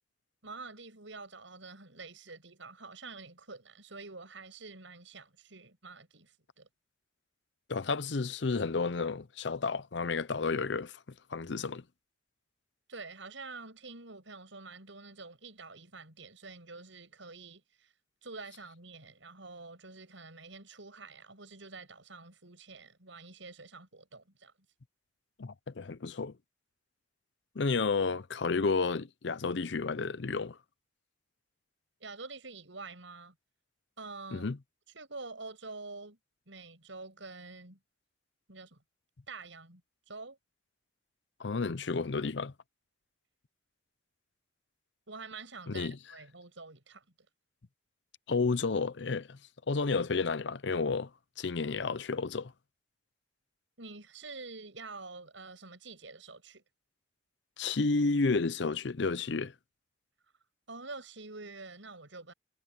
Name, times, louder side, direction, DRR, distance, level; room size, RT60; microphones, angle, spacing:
voice 1, 0.4-6.7 12.9-17.9 18.2-24.5 32.0-33.3 34.0-34.5 34.9-36.2 36.5-37.8 38.5-38.8 39.3-39.8 40.1-40.4 45.1-47.0 53.8-56.6 60.7-62.3, right 3 dB, 85° right, 7.0 m, -47 dB
voice 2, 7.7-11.0 11.3-11.8 25.4-26.4 27.6-30.6 34.3-34.6 41.4-42.5 45.7-46.0 48.3-49.4 49.7-51.1 51.4-52.5 57.6-59.5, left 4 dB, 70° left, 0.7 m, -31 dB
head